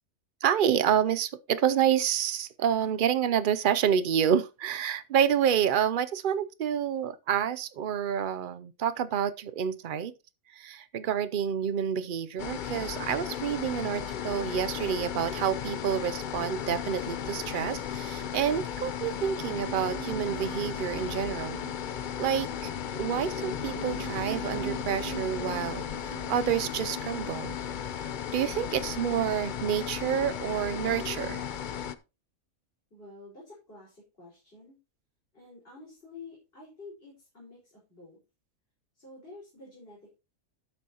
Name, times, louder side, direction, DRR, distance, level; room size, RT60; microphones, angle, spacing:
voice 1, 0.4-10.1 10.5-21.6 22.2-22.7 23.0-27.6 28.0-28.1 28.3-31.4, right 9 dB, 75° right, 0.4 m, -28 dB
sound 1, 12.4-31.9, left 8 dB, 65° left, 0.4 m, -35 dB
sound 2, 19.2-28.6 28.8-28.9, right 14 dB, 35° right, 4.0 m, -44 dB
voice 2, 32.9-34.8 35.3-38.2 38.9-40.0, left 3 dB, 40° left, 5.1 m, -49 dB
12.5 x 7.7 x 2.9 m
omnidirectional pair, 1.6 m